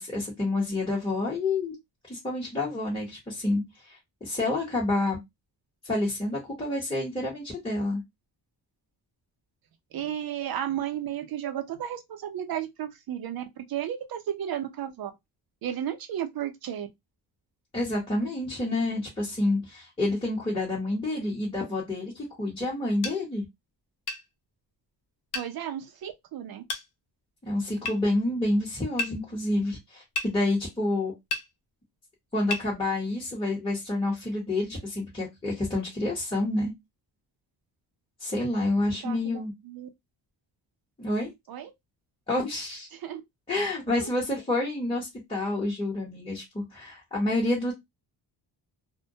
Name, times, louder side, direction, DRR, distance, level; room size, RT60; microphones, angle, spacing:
voice 1, 0.0-1.7 2.1-5.2 5.8-8.0 17.7-23.4 27.4-31.1 32.3-36.7 38.2-39.5 41.0-41.3 42.3-42.9 43.5-47.7, left 2 dB, 10° left, 0.9 m, -28 dB
voice 2, 9.9-15.1 15.6-16.9 25.3-26.6 39.0-39.9 41.5-41.7 42.9-43.2 43.9-44.1, right 10 dB, 55° right, 0.6 m, -33 dB
sound 1, 23.0-23.2 24.1-24.2 25.3-25.5 26.7-26.9 27.9-28.0 29.0-29.2 30.2-30.3 31.3-31.5 32.5-32.7, left 3 dB, 65° left, 0.6 m, -31 dB
2.2 x 2.1 x 2.7 m
cardioid pair, 120°, 42 cm